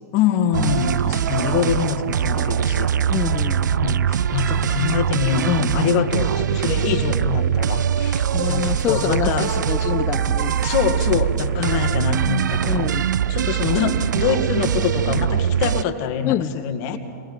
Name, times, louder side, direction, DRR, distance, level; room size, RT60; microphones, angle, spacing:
voice 1, 0.1-2.9 3.7-9.5 10.6-12.8 13.3-17.0, left 8 dB, 45° left, 5 dB, 2.0 m, -24 dB
sound 1, 0.5-15.8, right 9 dB, 85° right, 0.4 m, -22 dB
voice 2, 3.1-3.8 8.3-10.6 11.6-11.7 12.6-13.1 16.2-16.5, left 12 dB, 30° left, 12 dB, 0.7 m, -26 dB
26.0 x 20.5 x 5.3 m, 2.5 s
hypercardioid pair, 120°, 10 cm